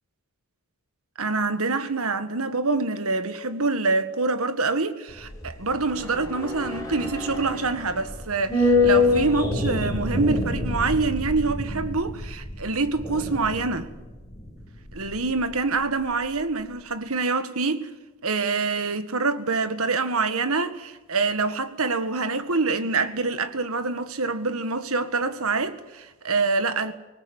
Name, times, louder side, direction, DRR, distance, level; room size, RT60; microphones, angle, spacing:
voice 1, 1.2-13.9 14.9-17.9 18.2-26.9, right 3 dB, 75° right, 1.7 m, -26 dB
sound 1, 5.1-15.5 15.8-15.9, left 3 dB, 15° left, 5.3 m, -27 dB
25.0 x 19.5 x 8.1 m
head